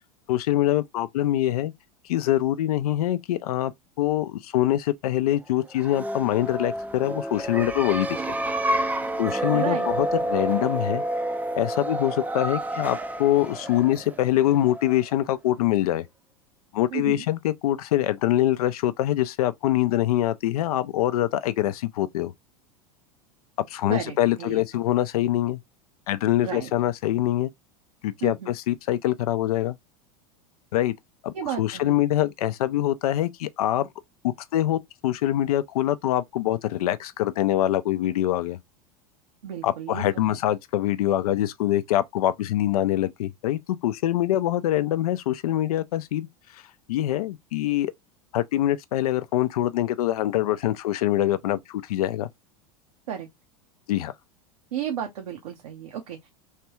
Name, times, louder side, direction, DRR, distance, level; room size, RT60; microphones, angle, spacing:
voice 1, 0.3-1.7 2.1-8.3 9.2-11.0 11.6-16.1 16.7-22.3 23.7-25.6 26.1-27.5 28.0-29.8 30.7-30.9 31.2-33.9 34.2-38.6 39.6-46.3 46.9-47.9 48.3-52.3 53.9-54.1, left 13 dB, 80° left, 0.4 m, -24 dB
sound 1, 5.7-15.2, right 1 dB, 10° right, 0.4 m, -29 dB
voice 2, 9.5-9.9 16.9-17.2 23.9-24.8 26.4-26.7 28.2-28.5 31.3-32.0 39.4-40.4 53.1-53.3 54.7-56.3, right 9 dB, 80° right, 0.7 m, -33 dB
3.2 x 2.2 x 2.9 m
hypercardioid pair, 100°, 19 cm